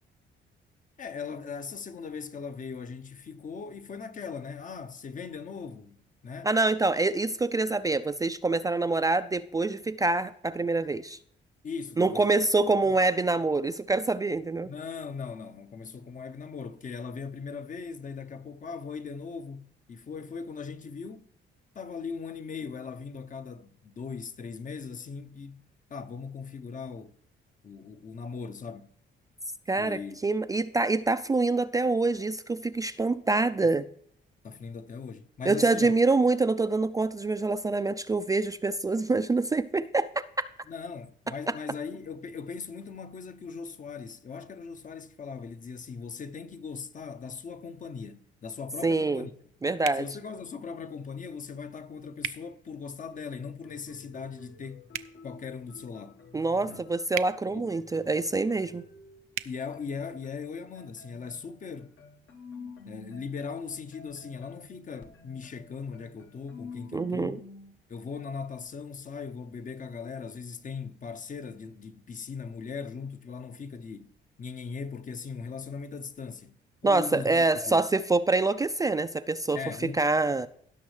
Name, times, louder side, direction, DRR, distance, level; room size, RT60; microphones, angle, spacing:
voice 1, 1.0-6.5 11.6-12.3 12.8-13.0 14.6-21.3 21.7-25.6 25.9-27.2 27.6-29.0 29.8-30.2 33.6-33.7 34.4-35.9 40.7-49.3 49.9-54.9 55.2-56.2 56.6-56.8 57.5-57.7 59.4-62.0 62.8-67.4 67.9-74.1 74.4-76.6 76.8-77.8 79.5-80.0, left 5 dB, 40° left, 0.7 m, -39 dB
voice 2, 6.4-11.2 12.0-14.7 29.7-33.8 35.5-40.1 48.8-49.3 49.6-50.0 56.3-58.8 66.9-67.4 76.8-80.5, right 3 dB, 15° right, 0.3 m, -26 dB
sound 1, 49.8-50.1 52.2-52.4 54.9-55.1 57.1-57.3 59.3-59.5, right 13 dB, 85° right, 0.5 m, -34 dB
sound 2, 53.1-59.4 59.7-67.7, left 3 dB, 70° left, 1.3 m, -50 dB
16.5 x 6.2 x 3.2 m
cardioid pair, 90°, 20 cm